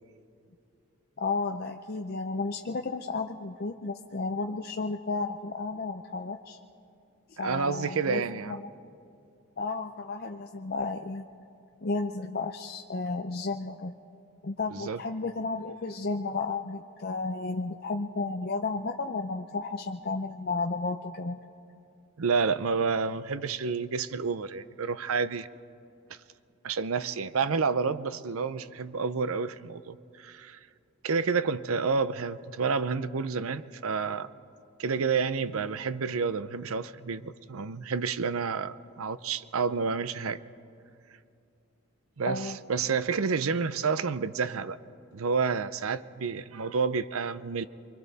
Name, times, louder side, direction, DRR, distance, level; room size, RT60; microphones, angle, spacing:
voice 1, 1.2-6.6 7.4-8.7 9.6-11.3 11.8-14.0 14.4-21.4 42.3-42.6, left 3 dB, 45° left, 4 dB, 0.6 m, -33 dB
voice 2, 7.4-8.6 14.7-15.0 22.2-25.5 26.1-26.2 26.6-30.6 31.0-34.3 34.8-40.4 42.2-44.8 45.1-47.7, right 5 dB, 75° right, 14 dB, 0.6 m, -29 dB
28.0 x 23.0 x 4.1 m, 2.5 s
head